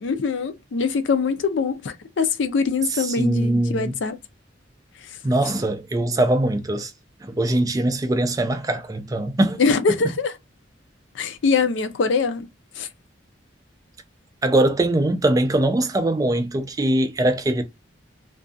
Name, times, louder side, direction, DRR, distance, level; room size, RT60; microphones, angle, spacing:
voice 1, 0.0-4.2 5.0-5.2 9.6-10.4 11.1-12.5 12.8-12.9, left 4 dB, 70° left, 0.4 m, -23 dB
voice 2, 2.9-3.9 5.2-6.9 7.3-9.6 14.4-17.6, right 1 dB, 20° right, 0.3 m, -21 dB
2.5 x 2.2 x 2.4 m
head